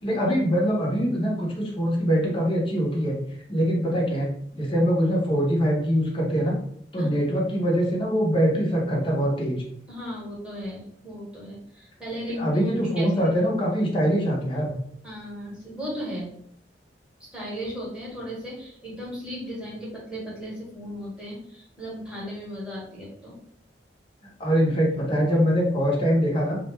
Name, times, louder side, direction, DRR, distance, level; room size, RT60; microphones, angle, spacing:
voice 1, 0.0-3.2 3.5-4.3 4.5-6.5 6.9-9.6 12.4-14.7 24.4-26.6, equal, 30° left, -3 dB, 0.8 m, -23 dB
voice 2, 9.9-13.1 15.0-16.3 17.3-23.4, equal, 5° right, -6 dB, 1.1 m, -36 dB
2.4 x 2.2 x 3.1 m, 0.67 s
head